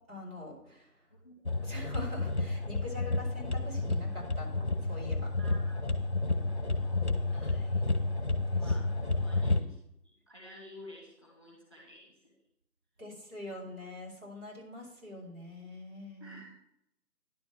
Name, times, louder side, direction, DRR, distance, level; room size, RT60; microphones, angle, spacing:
voice 1, 0.1-0.9 1.6-5.3 7.3-7.7 8.5-8.6 13.0-16.4, left 1 dB, 60° right, -3 dB, 4.8 m, -44 dB
voice 2, 1.1-1.9 5.4-5.8 6.3-7.1 8.5-9.8 10.0-12.4 16.2-16.6, left 1 dB, 20° left, -1 dB, 1.9 m, -53 dB
sound 1, 1.5-9.6, left 2 dB, 45° left, 0.9 m, -31 dB
10.5 x 6.7 x 5.7 m, 0.78 s
figure-of-eight pair, 175°, 48 cm